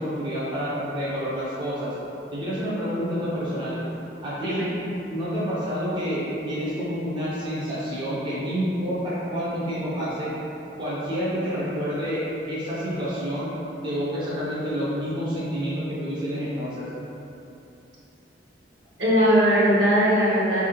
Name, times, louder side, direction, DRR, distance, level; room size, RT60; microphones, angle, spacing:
voice 1, 0.0-1.9 2.3-3.8 4.2-4.7 5.1-10.4 10.8-13.5 13.8-16.9, equal, 25° right, -9 dB, 0.5 m, -28 dB
voice 2, 19.0-20.7, equal, 70° right, -8 dB, 0.8 m, -20 dB
3.0 x 2.4 x 2.9 m, 2.8 s
head